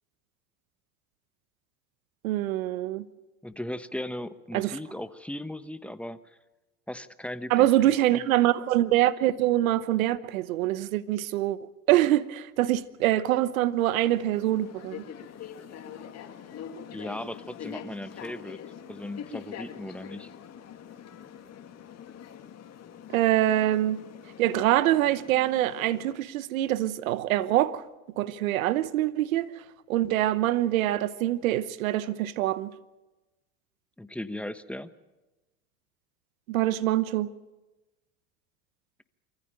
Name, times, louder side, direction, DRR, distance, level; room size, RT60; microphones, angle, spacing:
voice 1, 2.2-3.0 4.5-4.8 7.5-15.0 23.1-24.0 24.4-27.8 28.2-29.5 29.9-32.7 36.5-37.3, right 14 dB, 85° right, 1.1 m, -25 dB
voice 2, 3.4-6.4 6.9-8.2 16.9-18.6 18.9-20.3 34.0-34.9, left 1 dB, 5° left, 1.0 m, -37 dB
sound 1, 13.8-26.1, left 8 dB, 40° left, 2.4 m, -44 dB
24.5 x 15.0 x 9.0 m
supercardioid pair, 100°, 40 cm